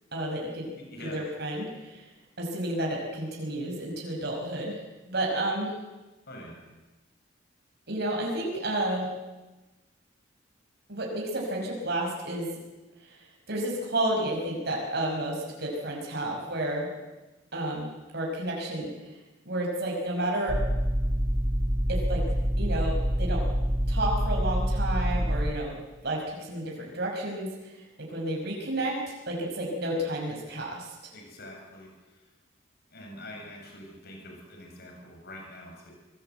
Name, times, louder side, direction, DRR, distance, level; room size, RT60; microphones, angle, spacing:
voice 1, 0.1-0.7 1.0-2.0 2.4-4.8 5.1-5.7 7.9-9.1 10.9-12.5 13.5-16.9 17.5-18.9 19.5-20.6 21.9-22.2 22.6-23.4 23.9-25.8 26.0-27.5 28.0-30.9, right 1 dB, 60° right, -1 dB, 5.5 m, -31 dB
voice 2, 0.8-1.2 6.3-6.6 31.1-32.2 32.9-35.9, left 1 dB, 55° left, 1 dB, 7.3 m, -45 dB
sound 1, 20.5-25.5, equal, 25° right, 1.2 m, -26 dB
25.0 x 20.0 x 8.0 m, 1.1 s
head